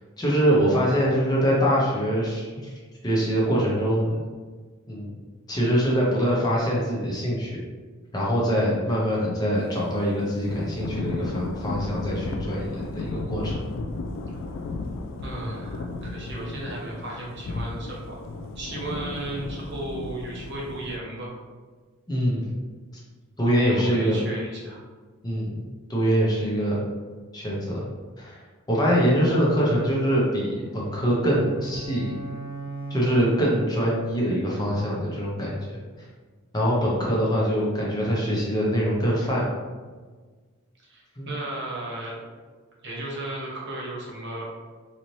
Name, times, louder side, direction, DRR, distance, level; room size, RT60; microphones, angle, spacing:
voice 1, 0.2-2.7 3.0-4.3 4.9-5.1 5.5-7.6 8.1-13.6 22.1-22.5 23.4-24.2 25.2-25.6 25.9-26.8 27.3-27.8 28.2-28.4 28.7-32.1 32.9-35.8 36.5-39.4 41.2-41.3, equal, 20° left, -5 dB, 0.7 m, -24 dB
Thunder / Rain, 10.4-21.0, left 3 dB, 70° left, 0.3 m, -34 dB
voice 2, 15.2-18.2 18.5-21.3 23.5-24.8 40.9-42.3 42.8-44.4, right 1 dB, 55° right, -4 dB, 1.1 m, -35 dB
sound 1, 30.4-33.9, right 3 dB, 35° right, 1.0 m, -38 dB
4.0 x 2.8 x 3.1 m, 1.4 s
head